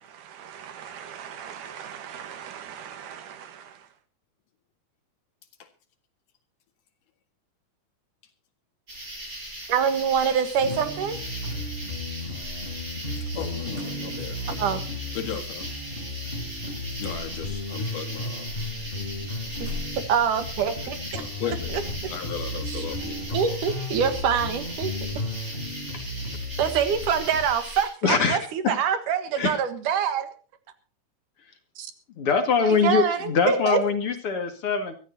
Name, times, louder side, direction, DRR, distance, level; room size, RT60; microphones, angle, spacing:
voice 1, 0.0-3.8 9.7-11.2 14.6-14.8 19.6-19.7 20.1-21.8 22.7-22.9 23.3-25.2 26.6-30.3 31.8-31.9 32.6-33.8, right 7 dB, 75° right, 2.9 m, -26 dB
sound 1, 8.9-27.9, equal, 25° right, 8.5 m, -38 dB
sound 2, 10.6-27.5, left 1 dB, 15° left, 4.5 m, -34 dB
voice 2, 13.4-14.8 15.2-15.7 17.0-18.5 21.1-21.7 22.1-23.6, left 9 dB, 75° left, 3.4 m, -36 dB
voice 3, 28.0-28.4 28.6-28.7 29.4-29.6 32.2-34.9, left 5 dB, 45° left, 2.8 m, -23 dB
23.5 x 14.0 x 2.8 m
omnidirectional pair, 3.7 m